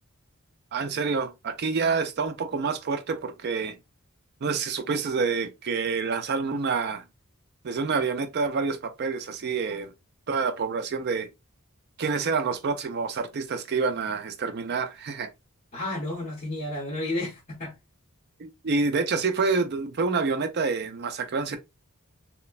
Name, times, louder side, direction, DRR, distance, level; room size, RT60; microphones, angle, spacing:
voice 1, 0.7-3.8 4.4-7.0 7.6-9.9 10.3-11.3 12.0-15.3 18.4-21.6, right 4 dB, 50° right, 0.4 m, -27 dB
voice 2, 15.7-17.8, left 1 dB, 35° left, 0.8 m, -32 dB
3.0 x 2.0 x 2.3 m
head